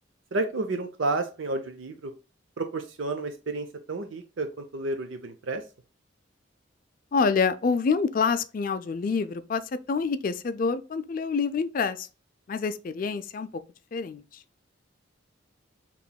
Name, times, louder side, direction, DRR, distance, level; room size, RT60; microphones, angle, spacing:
voice 1, 0.3-2.1 2.6-5.6, right 2 dB, 75° right, 0.6 m, -31 dB
voice 2, 7.1-9.6 9.9-12.1 12.5-13.5 13.9-14.4, left 5 dB, 45° left, 0.3 m, -27 dB
6.9 x 3.0 x 2.2 m
head